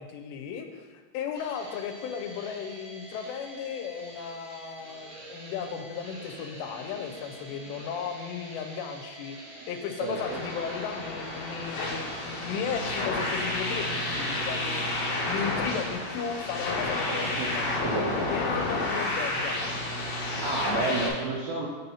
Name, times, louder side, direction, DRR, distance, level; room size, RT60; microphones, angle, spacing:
voice 1, 0.0-9.4 9.7-17.9 18.3-19.6, left 7 dB, 90° left, 5 dB, 2.7 m, -35 dB
sound 1, 1.3-15.9, right 2 dB, 65° right, 3.0 m, -46 dB
voice 2, 10.0-10.4 17.1-17.5 17.8-18.1 20.4-21.7, right 3 dB, 85° right, -3 dB, 2.1 m, -30 dB
sound 2, 10.1-21.1, left 2 dB, 65° left, 2.2 m, -31 dB
6.2 x 2.7 x 5.5 m, 1.4 s
omnidirectional pair, 4.8 m